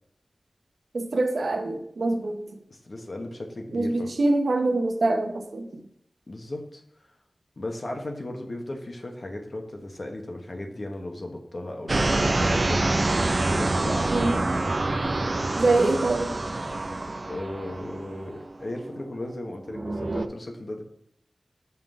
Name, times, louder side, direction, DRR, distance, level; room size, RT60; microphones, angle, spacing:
voice 1, 0.9-2.4 3.7-5.8 14.1-14.4 15.6-16.3, right 2 dB, 80° right, 5 dB, 0.8 m, -24 dB
voice 2, 2.7-4.1 6.3-6.8 7.6-14.2 17.3-20.8, left 1 dB, 50° left, 3 dB, 1.1 m, -36 dB
sound 1, 11.9-19.1 19.7-20.3, right 2 dB, 45° right, 0.4 m, -26 dB
5.6 x 3.8 x 5.1 m, 0.74 s
wide cardioid pair, 80°, 0 cm